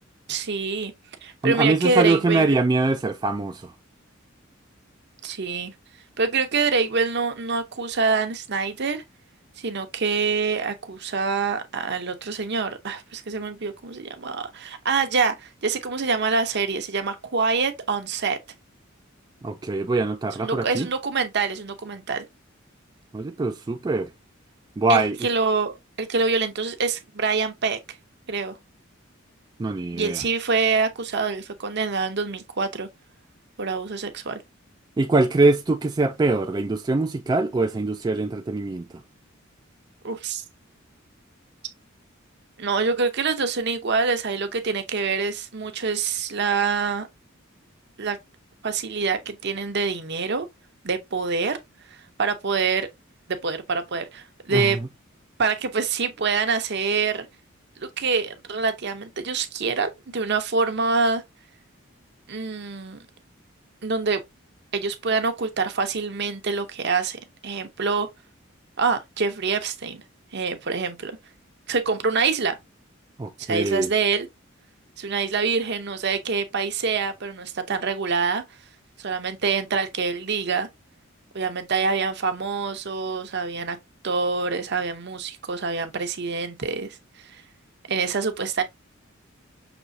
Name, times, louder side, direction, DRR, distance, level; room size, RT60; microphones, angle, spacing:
voice 1, 0.3-0.9 1.2-2.6 5.2-5.7 6.2-9.0 9.6-18.4 20.4-22.2 24.9-27.8 28.3-28.5 29.9-32.9 33.6-34.4 40.0-40.4 42.6-47.1 48.0-48.2 48.6-50.5 50.8-51.6 52.2-52.9 53.3-54.8 55.4-57.3 57.8-61.2 62.3-63.0 63.8-64.2 64.7-68.1 68.8-70.0 70.3-71.2 71.7-72.6 73.4-74.3 75.0-78.4 79.0-80.7 81.3-83.8 84.0-86.9 87.2-87.4 87.9-88.6, right 4 dB, 55° right, 0.8 m, -25 dB
voice 2, 1.4-3.7 19.4-20.9 23.1-24.1 24.8-25.2 29.6-30.2 35.0-38.9 54.5-54.8 73.2-73.9, right 3 dB, 20° right, 0.3 m, -23 dB
6.0 x 3.0 x 2.6 m
head